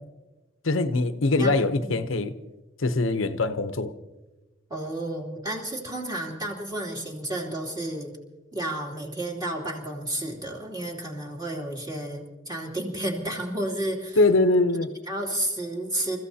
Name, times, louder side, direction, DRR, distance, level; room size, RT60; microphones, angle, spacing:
voice 1, 0.6-2.3 2.8-3.9 14.2-14.9, left 2 dB, 80° left, 9 dB, 0.8 m, -22 dB
voice 2, 1.4-2.0 4.7-8.1 8.5-14.2 15.1-16.2, right 1 dB, 20° right, -1 dB, 2.9 m, -31 dB
29.5 x 15.0 x 2.8 m, 1.2 s
head